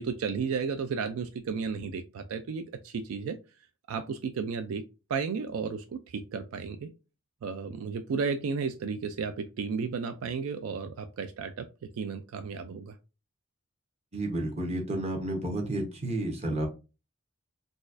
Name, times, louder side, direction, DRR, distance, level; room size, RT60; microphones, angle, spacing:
voice 1, 0.0-3.4 3.9-4.8 5.1-6.9 7.4-11.7 12.0-12.9, right 5 dB, 75° right, 0.3 m, -33 dB
voice 2, 14.1-16.7, right 1 dB, 30° right, 0.9 m, -31 dB
4.0 x 2.4 x 2.5 m
head